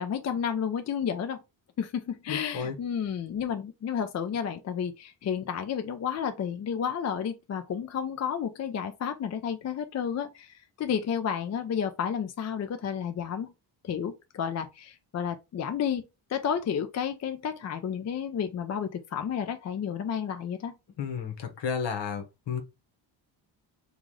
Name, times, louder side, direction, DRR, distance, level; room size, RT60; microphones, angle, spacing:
voice 1, 0.0-1.4 1.8-13.5 13.8-16.0 16.3-20.7, left 7 dB, 35° left, 0.4 m, -31 dB
voice 2, 2.3-2.7 21.0-22.6, left 6 dB, 60° left, 1.1 m, -32 dB
3.0 x 2.5 x 3.8 m
cardioid pair, 85°, 48 cm